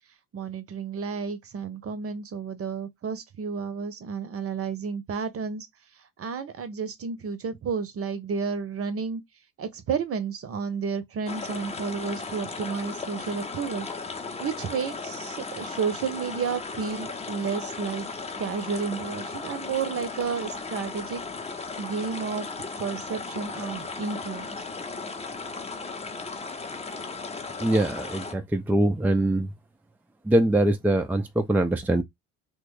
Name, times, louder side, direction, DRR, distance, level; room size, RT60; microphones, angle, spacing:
voice 1, 0.3-5.7 6.2-9.2 9.6-13.9 14.4-18.1 18.4-21.2 21.8-22.5 22.8-24.6, right 5 dB, 35° right, 0.8 m, -31 dB
sound 1, 11.3-28.3, left 4 dB, 15° left, 0.8 m, -36 dB
voice 2, 27.6-29.5 30.2-32.0, right 1 dB, 5° right, 0.4 m, -23 dB
3.2 x 2.2 x 3.2 m
figure-of-eight pair, 50°, 40 cm